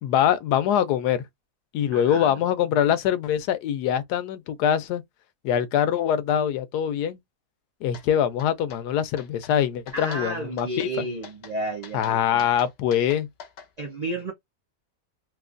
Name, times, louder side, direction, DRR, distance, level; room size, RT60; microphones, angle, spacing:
voice 1, 0.0-1.2 1.7-5.0 5.4-7.2 7.8-10.9 11.9-13.3, left 9 dB, 85° left, 1.1 m, -23 dB
voice 2, 1.9-2.4 9.9-12.5 13.8-14.3, right 2 dB, 70° right, 0.4 m, -32 dB
sound 1, 7.9-8.1 8.4-8.8 9.2-9.5 9.9-10.3 10.6-10.9 11.2-11.6 11.8-13.7, left 6 dB, 55° left, 0.7 m, -44 dB
3.0 x 2.9 x 2.5 m
omnidirectional pair, 1.7 m